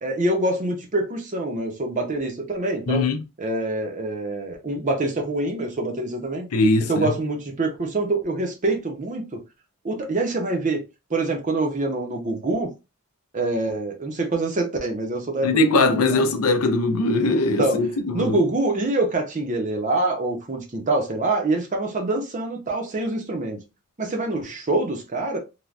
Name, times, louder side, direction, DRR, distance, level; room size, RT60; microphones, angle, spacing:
voice 1, 0.0-3.0 3.4-6.5 6.9-9.4 9.8-10.8 11.1-12.7 13.3-16.2 17.6-17.8 18.1-23.6 24.0-25.4, right 2 dB, 35° right, 0.6 m, -25 dB
voice 2, 2.9-3.2 6.5-7.1 15.4-18.4, left 2 dB, 75° left, 0.5 m, -21 dB
3.2 x 2.2 x 2.4 m
head